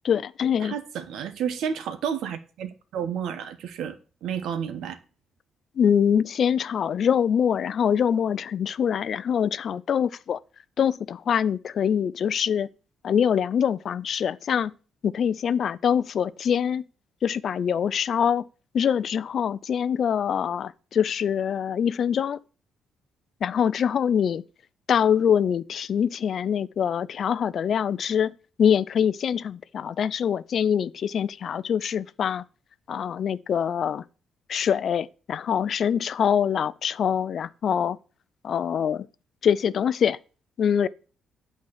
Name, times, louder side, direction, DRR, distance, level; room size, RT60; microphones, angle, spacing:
voice 1, 0.0-0.8 5.8-10.4 10.8-12.7 13.0-14.7 15.0-16.8 17.2-18.5 18.7-22.4 23.4-24.4 24.9-28.3 28.6-32.4 32.9-34.0 34.5-38.0 38.4-39.1 39.4-40.2 40.6-40.9, left 8 dB, 60° left, 0.4 m, -24 dB
voice 2, 0.6-3.9 4.2-5.0, right 8 dB, 80° right, 1.0 m, -31 dB
8.5 x 4.5 x 6.4 m
cardioid pair, 90°, 0 cm